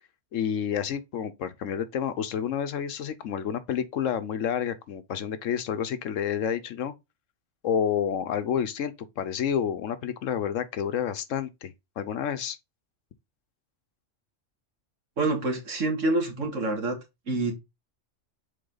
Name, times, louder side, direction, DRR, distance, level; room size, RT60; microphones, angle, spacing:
voice 1, 0.3-6.9 7.6-12.6, left 8 dB, 90° left, 1.2 m, -29 dB
voice 2, 15.2-17.0 17.3-17.6, right 2 dB, 85° right, 2.2 m, -27 dB
6.5 x 4.4 x 3.9 m
omnidirectional pair, 1.3 m